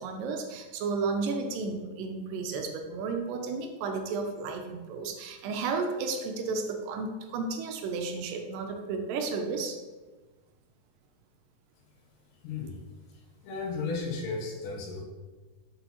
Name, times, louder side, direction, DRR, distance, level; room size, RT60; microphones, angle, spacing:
voice 1, 0.0-9.8, right 4 dB, 80° right, 4 dB, 2.2 m, -33 dB
voice 2, 12.4-12.8 13.4-15.0, left 4 dB, 70° left, -1 dB, 2.6 m, -34 dB
6.8 x 5.5 x 3.0 m, 1.3 s
omnidirectional pair, 4.1 m